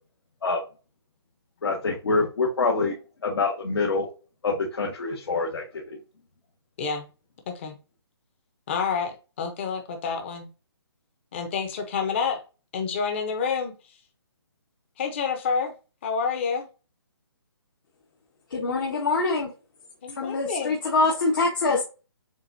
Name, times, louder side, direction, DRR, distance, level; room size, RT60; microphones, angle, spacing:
voice 1, 1.6-2.9 3.2-4.1 4.4-6.0, left 3 dB, 65° left, 1.5 m, -26 dB
voice 2, 8.7-10.5 11.3-12.4 12.7-13.7 15.0-15.7 16.0-16.7 20.0-20.7, left 5 dB, 25° left, 0.9 m, -28 dB
voice 3, 18.5-19.5 20.1-21.8, left 3 dB, 50° left, 1.1 m, -24 dB
7.3 x 2.5 x 2.7 m
hypercardioid pair, 165°, 14 cm